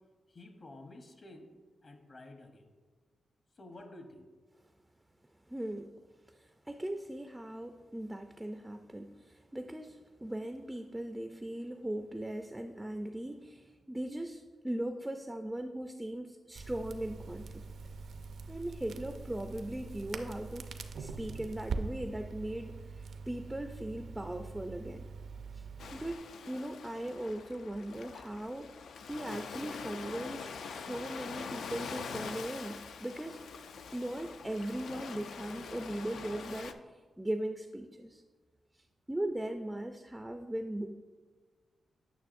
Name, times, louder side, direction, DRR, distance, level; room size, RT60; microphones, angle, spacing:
voice 1, 0.3-1.5 1.8-2.7 3.6-4.3, left 2 dB, 40° left, 4 dB, 0.9 m, -51 dB
voice 2, 5.5-5.9 6.3-17.6 18.5-20.7 21.0-25.1 25.5-25.7 25.9-26.2 26.5-33.4 33.9-38.2 38.7-40.9, right 1 dB, 10° right, 6 dB, 0.3 m, -39 dB
Crackle, 16.6-26.1, right 4 dB, 70° right, 0.5 m, -43 dB
Ocean, 25.8-36.7, left 5 dB, 80° left, 0.4 m, -44 dB
9.1 x 6.2 x 2.6 m, 1.4 s
wide cardioid pair, 110°, 0 cm